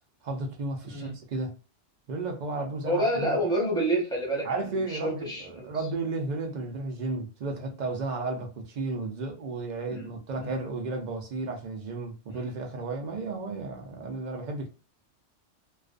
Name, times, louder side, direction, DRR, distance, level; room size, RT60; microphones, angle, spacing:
voice 1, 0.2-1.6 2.1-3.4 4.4-14.7, right 3 dB, 50° right, 0.5 m, -33 dB
voice 2, 0.8-1.2 2.8-4.5 4.7-5.7 9.9-10.1 10.4-10.6 12.3-12.4, right 1 dB, 5° left, 0.9 m, -28 dB
2.4 x 2.2 x 2.4 m
omnidirectional pair, 1.2 m